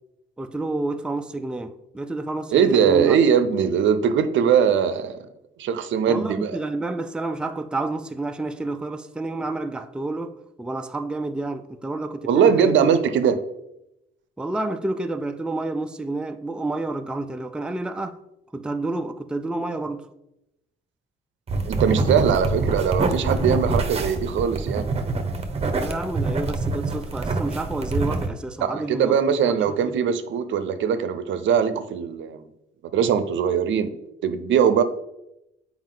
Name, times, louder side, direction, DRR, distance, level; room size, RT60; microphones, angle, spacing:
voice 1, 0.4-3.2 6.1-12.9 14.4-18.2 18.5-20.1 25.8-29.5 29.8-30.0, right 2 dB, 5° right, 0.4 m, -29 dB
voice 2, 2.5-5.3 5.6-6.5 12.2-13.4 21.7-24.9 28.6-32.4 32.9-33.9 34.2-34.8, right 7 dB, 70° right, 0.6 m, -21 dB
sound 1, 21.5-28.3, right 3 dB, 30° right, 0.8 m, -25 dB
7.3 x 4.7 x 3.9 m
cardioid pair, 90°, 20 cm